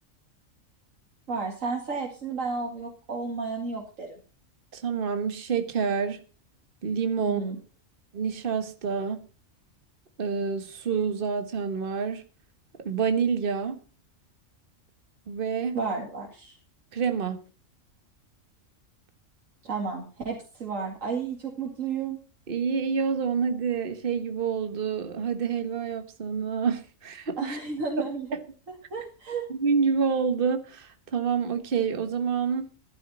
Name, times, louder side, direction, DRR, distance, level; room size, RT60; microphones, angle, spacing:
voice 1, 1.3-4.2 7.2-7.6 15.7-16.6 19.6-22.2 27.4-28.4 28.9-29.4, right 4 dB, 80° right, 2.7 m, -32 dB
voice 2, 4.7-6.2 6.8-7.4 8.1-9.3 10.2-12.2 12.8-13.8 15.3-15.8 16.9-17.4 22.5-27.6 28.3-28.4 29.5-32.7, right 6 dB, 45° right, 1.4 m, -27 dB
14.0 x 11.5 x 4.2 m
omnidirectional pair, 1.3 m